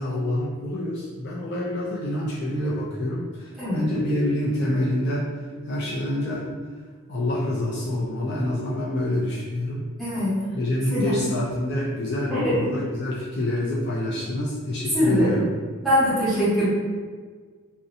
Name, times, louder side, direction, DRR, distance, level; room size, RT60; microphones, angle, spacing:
voice 1, 0.0-5.3 5.6-6.5 7.1-9.8 10.5-15.5, left 1 dB, 45° left, -5 dB, 0.3 m, -27 dB
voice 2, 10.0-10.3 10.9-11.1 12.3-12.6 14.9-15.3 15.8-16.6, equal, ahead, -14 dB, 1.1 m, -22 dB
2.5 x 2.1 x 2.6 m, 1.5 s
head